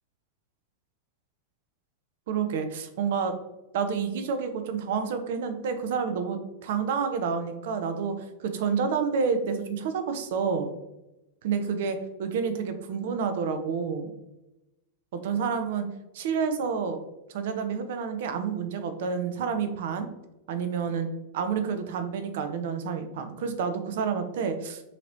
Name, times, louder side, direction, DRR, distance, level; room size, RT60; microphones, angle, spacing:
voice 1, 2.3-3.3 3.7-10.7 11.4-14.1 15.1-15.8 16.1-17.0 17.3-20.1 20.5-21.1 21.3-24.8, right 6 dB, 55° right, 8 dB, 0.6 m, -29 dB
5.9 x 3.0 x 2.6 m, 0.96 s
figure-of-eight pair, 90°, 0 cm